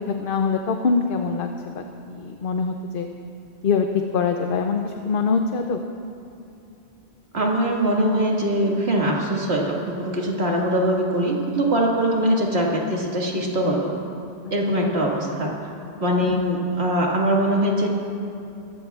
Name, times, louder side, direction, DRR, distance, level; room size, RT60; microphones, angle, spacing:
voice 1, 0.2-3.1 3.6-3.9 4.1-5.8 16.3-16.4, left 5 dB, 60° left, 5 dB, 0.8 m, -24 dB
voice 2, 7.3-13.9 14.5-15.5 16.0-17.9, right 1 dB, 70° right, -2 dB, 2.2 m, -22 dB
22.0 x 14.5 x 2.4 m, 2.7 s
omnidirectional pair, 1.1 m